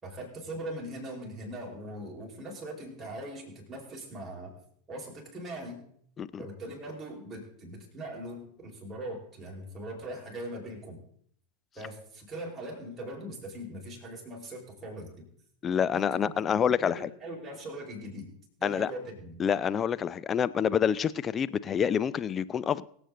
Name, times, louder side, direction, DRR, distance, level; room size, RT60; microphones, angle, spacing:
voice 1, 0.0-4.5 4.9-5.8 6.4-11.0 11.7-15.3 15.9-16.3 16.8-18.3 18.6-19.4, right 1 dB, 15° right, 5.0 m, -40 dB
voice 2, 15.6-17.1 18.6-18.9 19.4-22.9, left 8 dB, 25° left, 0.5 m, -27 dB
24.0 x 8.1 x 3.9 m
figure-of-eight pair, 85°, 0 cm